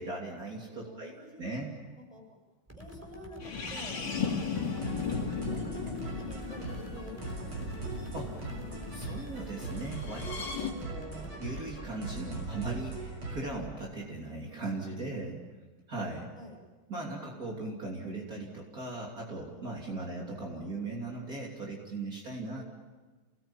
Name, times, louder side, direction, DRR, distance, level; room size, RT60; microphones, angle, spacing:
voice 1, 0.0-1.1 1.4-1.7 8.1-8.3 8.9-15.4 15.9-16.3 16.9-22.6, right 2 dB, 45° right, -2 dB, 3.5 m, -38 dB
voice 2, 0.8-1.7 2.0-2.2 2.7-8.4 16.3-16.6 19.9-20.2 22.5-22.6, left 1 dB, 15° left, 0 dB, 7.6 m, -50 dB
sound 1, 2.7-11.9, equal, 5° right, 3.5 m, -49 dB
sound 2, 3.4-9.1 9.9-10.7, left 6 dB, 60° left, 3.4 m, -36 dB
sound 3, 3.8-13.5, right 2 dB, 85° right, 7.7 m, -40 dB
29.0 x 19.5 x 8.9 m, 1.3 s
omnidirectional pair, 2.3 m